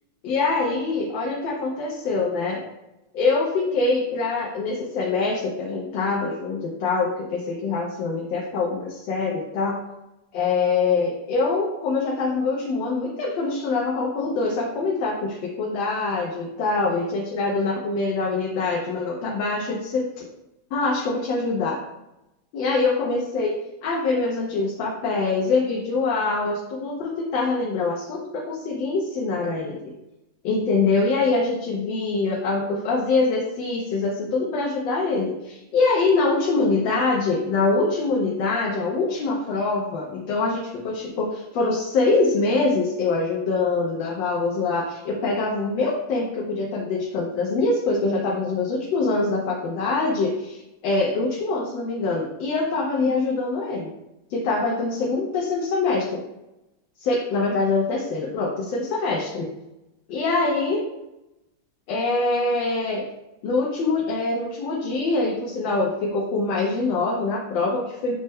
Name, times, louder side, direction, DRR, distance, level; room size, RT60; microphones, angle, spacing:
voice 1, 0.2-2.6 3.1-9.8 10.3-20.3 20.7-21.8 22.5-23.5 23.8-29.9 30.4-53.9 54.3-56.2 57.0-59.5 60.1-60.8 61.9-63.0 63.4-68.1, left 3 dB, 90° left, -2 dB, 1.4 m, -24 dB
6.3 x 2.1 x 3.4 m, 0.91 s
omnidirectional pair, 2.0 m